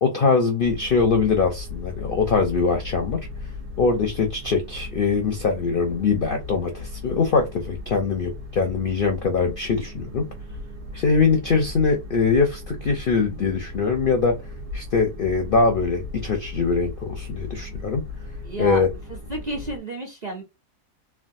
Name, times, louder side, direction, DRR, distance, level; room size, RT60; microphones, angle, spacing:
voice 1, 0.0-3.2 3.8-10.2 10.9-14.3 14.7-18.0 18.6-18.9, left 4 dB, 60° left, 0.5 m, -22 dB
sound 1, 0.6-19.8, left 3 dB, 75° right, 1.4 m, -36 dB
voice 2, 18.4-18.8 19.1-20.4, right 1 dB, 45° right, 0.6 m, -31 dB
3.4 x 2.2 x 2.6 m
omnidirectional pair, 1.6 m